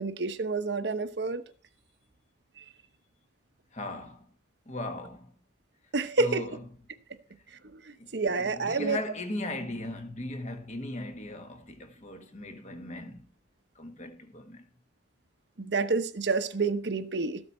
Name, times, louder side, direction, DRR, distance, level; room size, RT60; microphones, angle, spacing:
voice 1, 0.0-1.4 5.9-6.5 7.7-9.0 15.6-17.4, right 3 dB, 70° right, 0.9 m, -29 dB
voice 2, 3.7-4.3 4.6-5.3 6.2-6.6 8.0-13.2 13.7-14.7, left 1 dB, 40° left, 1.5 m, -38 dB
13.5 x 8.1 x 4.3 m
head